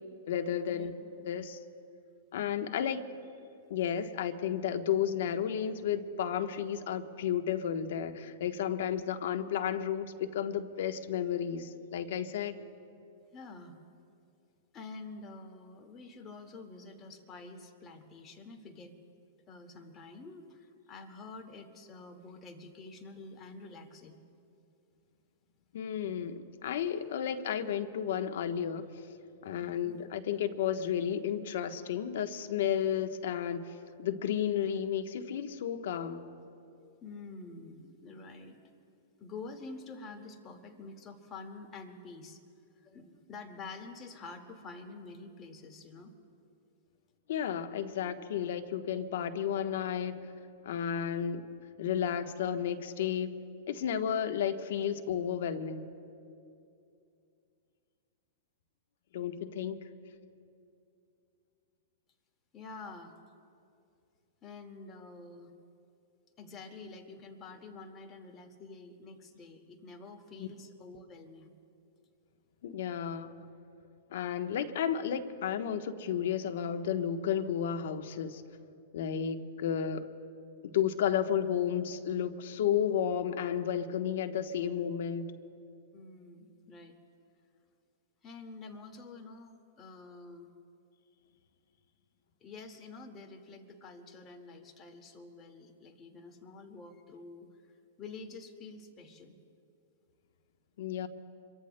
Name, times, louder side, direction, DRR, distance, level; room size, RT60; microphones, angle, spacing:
voice 1, 0.2-1.6 2.3-3.1 3.7-12.6 25.7-28.8 29.4-36.2 47.3-50.2 50.6-51.4 51.8-53.3 53.7-55.9 59.1-59.8 70.4-70.5 72.6-73.3 74.1-78.4 78.9-80.1 80.6-85.3 100.8-101.1, left 9 dB, 70° left, 7 dB, 1.1 m, -32 dB
voice 2, 13.3-13.8 14.7-18.9 19.5-24.2 29.6-30.0 37.0-38.6 39.2-42.4 42.8-46.1 62.5-63.1 64.4-65.5 66.4-71.5 85.9-87.0 88.2-90.5 92.4-97.5 98.0-99.4, left 3 dB, 30° left, 4 dB, 1.9 m, -48 dB
26.5 x 23.0 x 2.2 m, 2.6 s
hypercardioid pair, 115°, 0 cm